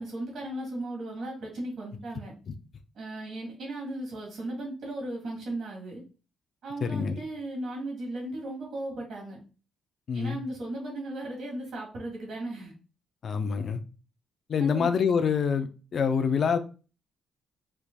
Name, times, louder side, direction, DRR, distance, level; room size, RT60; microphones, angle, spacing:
voice 1, 0.0-2.3 2.9-6.0 6.6-9.4 10.1-12.7 14.6-14.9, right 1 dB, 65° right, 1.7 m, -36 dB
voice 2, 6.8-7.2 10.1-10.4 13.2-13.8 14.5-16.6, left 6 dB, 55° left, 0.5 m, -26 dB
4.5 x 2.5 x 2.2 m
cardioid pair, 90°, 0 cm